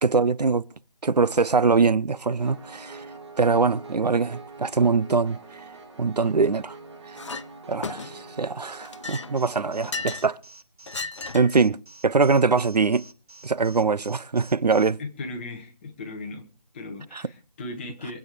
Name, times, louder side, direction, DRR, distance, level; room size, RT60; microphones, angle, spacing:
voice 1, 0.0-0.7 1.0-3.1 3.4-5.4 6.0-6.8 7.1-7.2 7.7-10.4 11.3-11.8 12.0-13.0 13.4-15.0 17.1-17.2, right 4 dB, 85° right, 0.8 m, -22 dB
Piano, 2.4-10.0, right 3 dB, 45° right, 3.2 m, -45 dB
Chink clink, 7.2-7.5 7.8-8.3 8.8-10.3 10.9-11.6, left 4 dB, 45° left, 0.7 m, -34 dB
Alarm, 9.4-14.9, right 2 dB, 65° right, 5.4 m, -49 dB
voice 2, 15.0-16.5 16.7-18.2, left 2 dB, 15° left, 1.7 m, -37 dB
23.0 x 8.9 x 5.1 m
figure-of-eight pair, 165°, 20 cm